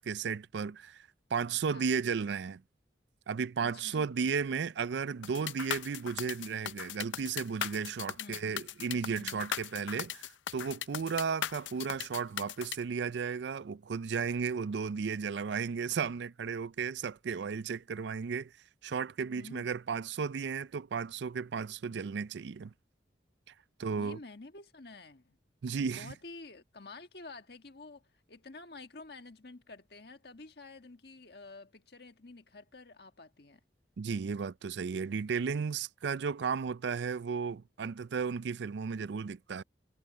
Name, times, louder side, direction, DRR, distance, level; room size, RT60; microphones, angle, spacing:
voice 1, 0.0-2.6 3.3-18.5 18.8-22.7 23.8-24.2 25.6-26.1 34.0-39.6, right 6 dB, 70° right, 0.4 m, -34 dB
voice 2, 3.6-4.2 8.2-8.5 9.1-9.5 19.3-19.8 24.0-25.4 25.8-28.0 28.3-33.6, left 3 dB, 55° left, 1.6 m, -50 dB
sound 1, 5.2-12.8, left 10 dB, 80° left, 0.5 m, -38 dB
head